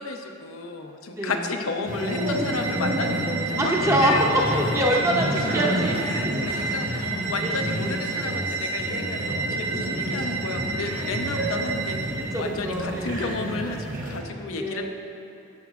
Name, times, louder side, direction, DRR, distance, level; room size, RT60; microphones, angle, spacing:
voice 1, 0.0-3.2 3.5-4.6 6.0-14.8, left 4 dB, 85° left, 5 dB, 0.6 m, -32 dB
sound 1, 1.9-14.2, equal, 40° right, 1.0 m, -29 dB
sound 2, 1.9-12.4, right 4 dB, 65° right, 0.8 m, -32 dB
voice 2, 3.6-4.1 4.6-5.9 7.4-7.6 7.8-8.0 10.0-10.3 12.2-13.3 14.6-14.8, right 1 dB, 15° right, -2 dB, 0.6 m, -25 dB
11.5 x 7.2 x 2.4 m, 2.7 s
head